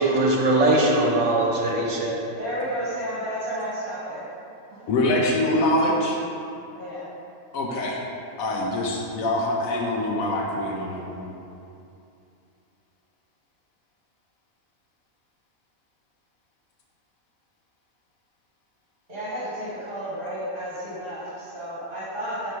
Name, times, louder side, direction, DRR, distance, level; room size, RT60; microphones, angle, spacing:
voice 1, 0.0-2.2, right 2 dB, 60° right, -2 dB, 1.2 m, -21 dB
voice 2, 2.4-4.2 4.7-4.9 6.7-7.1 19.1-22.5, equal, 40° right, -10 dB, 1.6 m, -32 dB
voice 3, 4.9-6.2 7.5-8.0 8.4-11.3, left 1 dB, 80° left, -1 dB, 1.1 m, -24 dB
5.5 x 4.3 x 4.6 m, 2.6 s
omnidirectional pair, 1.5 m